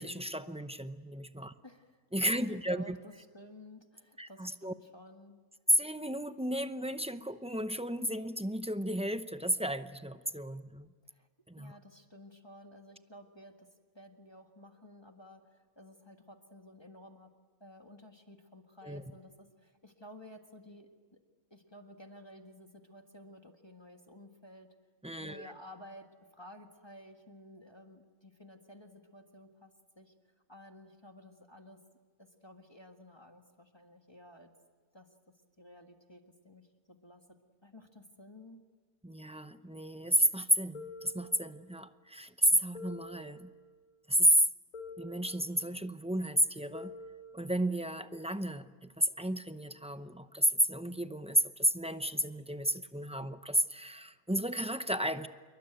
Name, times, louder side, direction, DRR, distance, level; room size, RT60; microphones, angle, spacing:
voice 1, 0.0-1.5 2.1-3.0 4.2-4.7 5.7-10.9 11.5-11.7 18.8-19.0 25.0-25.5 39.0-43.5 44.1-44.5 45.0-46.9 47.3-55.3, equal, 10° right, 10 dB, 0.4 m, -32 dB
voice 2, 1.6-2.0 2.3-5.4 11.0-11.3 11.6-13.7 13.9-17.3 17.6-21.2 21.5-24.7 25.1-30.1 30.5-31.8 32.2-34.5 34.9-35.1 35.6-37.2 37.6-38.6, left 1 dB, 20° left, 4 dB, 1.7 m, -54 dB
sound 1, 40.7-41.9 42.7-43.9 44.7-45.9 46.7-47.9, left 2 dB, 80° left, 5.2 m, -48 dB
27.5 x 23.0 x 9.1 m, 1.4 s
omnidirectional pair, 1.5 m